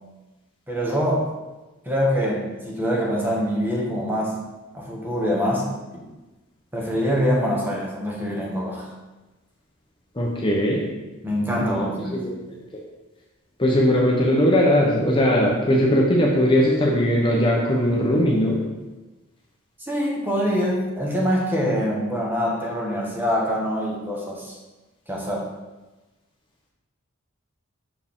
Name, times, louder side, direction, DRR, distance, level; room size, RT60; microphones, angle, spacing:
voice 1, 0.7-1.3 1.8-4.4 4.7-5.7 6.7-8.9 11.2-12.3 19.8-24.6 25.1-25.5, equal, 10° right, -3 dB, 1.0 m, -24 dB
voice 2, 10.2-10.8 11.6-12.3 13.6-18.6, equal, 25° left, -2 dB, 0.7 m, -19 dB
6.0 x 4.5 x 3.6 m, 1.1 s
head